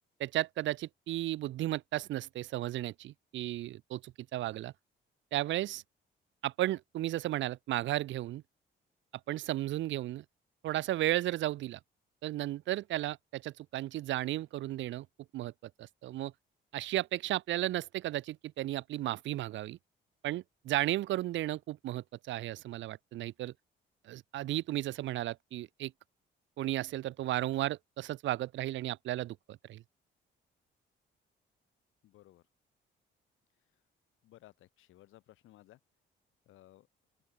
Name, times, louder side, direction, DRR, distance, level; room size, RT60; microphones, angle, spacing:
voice 1, 0.2-4.7 5.3-5.8 6.4-8.4 9.3-10.2 10.6-11.8 12.2-15.1 15.3-15.5 15.8-16.3 16.7-19.8 20.2-23.5 24.0-25.9 26.6-29.8, right 14 dB, 70° right, 0.5 m, -34 dB
voice 2, 32.0-32.4 34.2-35.8 36.5-36.9, left 15 dB, 85° left, 2.0 m, -58 dB
open air
cardioid pair, 90°, 20 cm